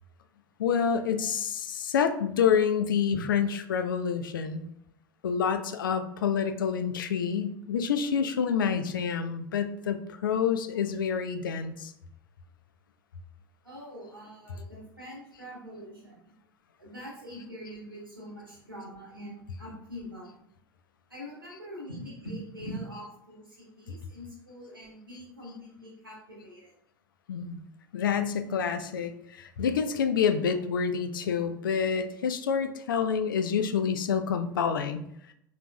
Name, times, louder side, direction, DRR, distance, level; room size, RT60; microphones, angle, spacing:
voice 1, 0.6-4.7 5.2-11.9 27.3-27.6 27.9-35.0, left 7 dB, 75° left, 8 dB, 0.4 m, -28 dB
voice 2, 13.6-16.2 16.8-20.3 21.1-26.7, equal, 90° right, -4 dB, 1.4 m, -43 dB
3.9 x 2.9 x 2.3 m, 0.73 s
figure-of-eight pair, 75°, 11 cm